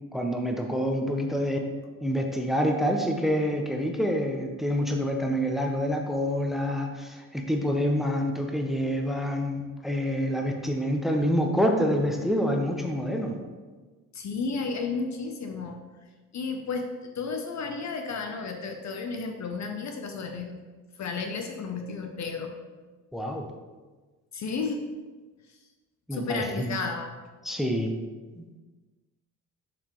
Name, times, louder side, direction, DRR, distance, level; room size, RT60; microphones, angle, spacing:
voice 1, 0.1-1.6 2.0-13.4 23.1-23.5 26.1-26.7 27.4-27.9 28.4-28.5, equal, ahead, 2 dB, 0.9 m, -27 dB
voice 2, 14.1-15.8 16.3-20.6 21.0-22.5 24.3-24.8 26.1-27.1, left 4 dB, 45° left, 4 dB, 0.8 m, -32 dB
6.9 x 5.3 x 3.2 m, 1.3 s
hypercardioid pair, 50°, 41 cm